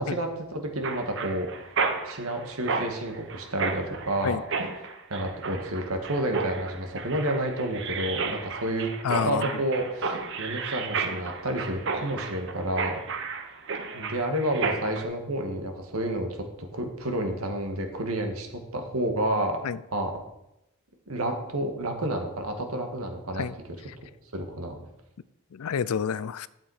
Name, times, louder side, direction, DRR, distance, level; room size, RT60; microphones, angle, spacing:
voice 1, 0.0-1.5 2.1-4.4 5.1-12.9 13.9-19.6 19.9-20.1 21.1-23.5 24.3-24.8, right 1 dB, 75° right, 4 dB, 1.9 m, -30 dB
Mechanisms, 0.8-15.0, right 4 dB, 55° right, 1.0 m, -32 dB
voice 2, 9.0-9.5 19.6-19.8 23.4-23.5 23.9-24.0 25.5-26.5, left 7 dB, 75° left, 18 dB, 0.4 m, -28 dB
12.0 x 7.3 x 5.0 m, 0.88 s
head